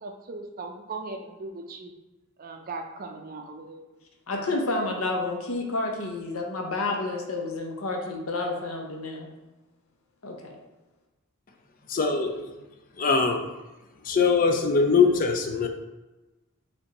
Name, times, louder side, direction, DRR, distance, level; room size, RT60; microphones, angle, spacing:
voice 1, 0.0-1.9 2.4-3.8, right 3 dB, 40° right, 4 dB, 0.5 m, -38 dB
voice 2, 4.3-9.3 10.2-10.6, left 2 dB, 70° left, 2 dB, 0.8 m, -30 dB
voice 3, 11.9-12.5 13.0-13.5 14.0-15.7, left 5 dB, 40° left, 5 dB, 0.4 m, -22 dB
5.2 x 3.5 x 2.9 m, 1.1 s
head